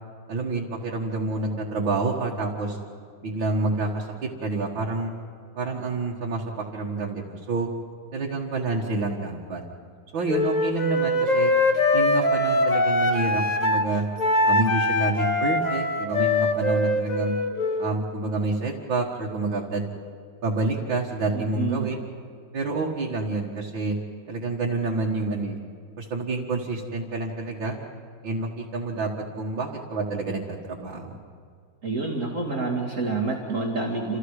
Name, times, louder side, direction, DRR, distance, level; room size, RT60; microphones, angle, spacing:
voice 1, 0.3-2.8 3.2-5.1 5.6-7.7 8.1-9.6 10.1-11.5 11.9-14.0 14.4-17.4 17.8-19.9 20.4-22.0 22.5-24.0 24.3-25.6 26.0-27.8 28.2-29.1 29.4-31.1, right 3 dB, 85° right, -3 dB, 2.5 m, -28 dB
Wind instrument woodwind instrument, 10.3-13.9 14.2-17.9, left 2 dB, 25° left, 1.4 m, -23 dB
voice 2, 21.3-21.9 31.8-34.2, right 3 dB, 40° right, -2 dB, 2.7 m, -28 dB
29.0 x 27.5 x 4.9 m, 2.1 s
omnidirectional pair, 2.0 m